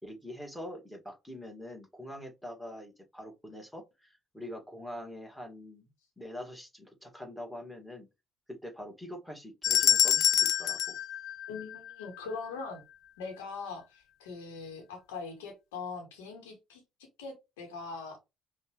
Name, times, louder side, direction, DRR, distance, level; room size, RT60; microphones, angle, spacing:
voice 1, 0.0-5.9 6.2-8.1 8.5-11.0, left 1 dB, ahead, 1.9 m, -44 dB
sound 1, 9.6-12.0, left 10 dB, 65° left, 0.4 m, -26 dB
voice 2, 11.5-12.8 13.2-16.8 17.2-18.2, left 4 dB, 80° left, 1.2 m, -41 dB
5.1 x 2.5 x 3.1 m
hypercardioid pair, 55°, 0 cm